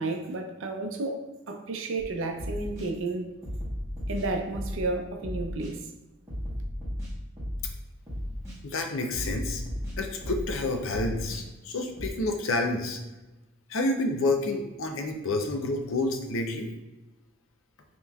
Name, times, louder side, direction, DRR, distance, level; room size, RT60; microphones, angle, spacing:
voice 1, 0.0-3.2 4.1-5.8, right 2 dB, 65° right, 4 dB, 0.5 m, -32 dB
sound 1, 2.0-2.1 2.4-2.9 3.4-4.9 5.2-5.7 6.3-7.7 8.1-8.6 9.1-10.6 10.9-11.4 12.0-12.1, equal, 15° right, 1.1 m, -35 dB
voice 2, 8.6-9.6 10.0-13.0 13.7-16.7, left 2 dB, 70° left, 4 dB, 0.6 m, -29 dB
5.3 x 3.0 x 2.3 m, 1.0 s
head